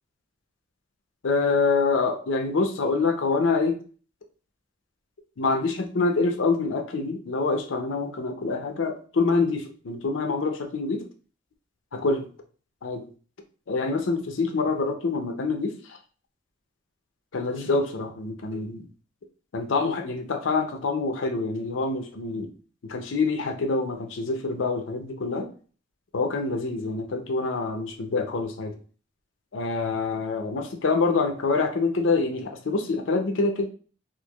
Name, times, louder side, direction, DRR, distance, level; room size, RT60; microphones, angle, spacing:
voice 1, 1.2-3.8 5.4-11.0 11.9-12.3 12.8-13.1 13.7-16.0 17.3-18.8 19.5-22.5 22.8-25.5 26.1-28.8 29.5-33.7, left 3 dB, 90° left, 5 dB, 0.6 m, -26 dB
4.4 x 2.5 x 2.3 m, 0.39 s
head